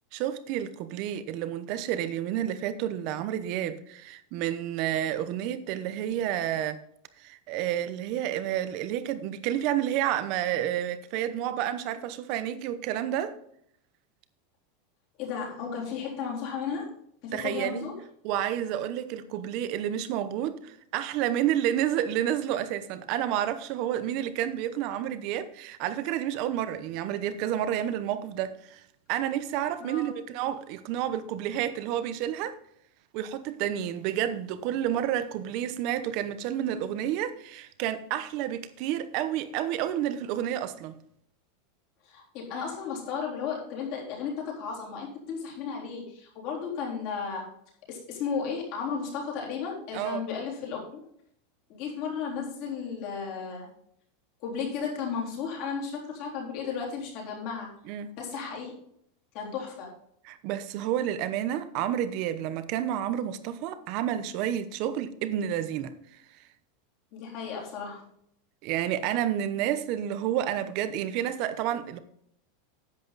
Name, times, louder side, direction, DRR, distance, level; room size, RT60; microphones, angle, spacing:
voice 1, 0.1-6.8 7.2-13.3 17.3-17.9 18.2-28.8 29.1-32.5 33.1-40.9 49.9-50.2 57.9-58.1 60.2-65.9 68.6-72.0, right 11 dB, 35° right, 0.8 m, -30 dB
voice 2, 15.2-16.9 17.2-17.9 29.8-30.1 42.0-47.5 47.9-51.0 51.7-53.7 54.4-57.7 58.2-58.7 59.3-59.9 67.1-68.1, left 6 dB, 40° left, 3.6 m, -34 dB
10.5 x 8.3 x 4.1 m
supercardioid pair, 180°, 0 cm